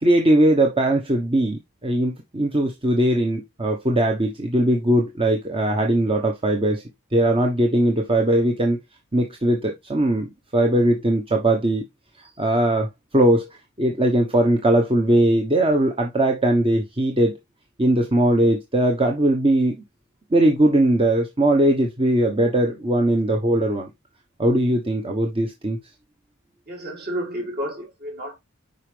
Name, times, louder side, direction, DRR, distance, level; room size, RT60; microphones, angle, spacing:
voice 1, 0.0-6.8 7.1-8.8 9.1-10.3 10.5-11.8 12.2-12.9 13.1-13.4 13.8-17.3 17.8-19.8 20.3-23.9 24.4-25.8, right 1 dB, 25° right, 1.1 m, -20 dB
voice 2, 26.7-28.4, equal, 50° right, 4.3 m, -31 dB
8.0 x 5.2 x 3.4 m
head